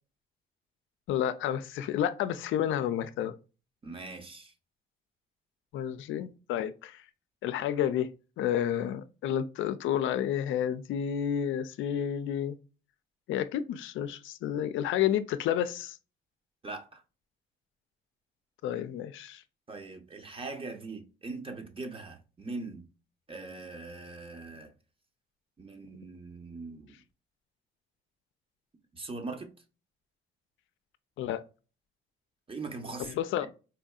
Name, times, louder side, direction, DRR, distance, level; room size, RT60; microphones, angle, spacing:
voice 1, 1.1-3.4 5.7-7.0 7.4-8.1 8.4-12.6 13.3-16.0 18.6-19.4 31.2-31.4 33.1-33.5, left 10 dB, 75° left, 0.4 m, -30 dB
voice 2, 3.8-4.5 16.6-17.0 19.7-22.9 23.3-24.7 25.6-27.0 28.9-29.5 32.5-33.1 33.4-33.5, right 3 dB, 25° right, 0.9 m, -41 dB
4.2 x 2.6 x 2.3 m
cardioid pair, 90°, 20 cm